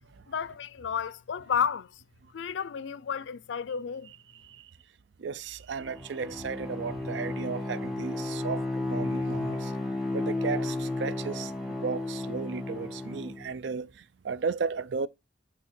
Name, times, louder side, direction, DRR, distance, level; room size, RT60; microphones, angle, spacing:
voice 1, 0.3-2.0 2.3-4.1, left 7 dB, 75° left, 0.4 m, -32 dB
voice 2, 5.2-9.7 10.1-13.9 14.2-15.1, right 5 dB, 70° right, 0.4 m, -34 dB
Bowed string instrument, 5.8-13.5, left 2 dB, ahead, 1.0 m, -33 dB
8.4 x 3.2 x 4.3 m
head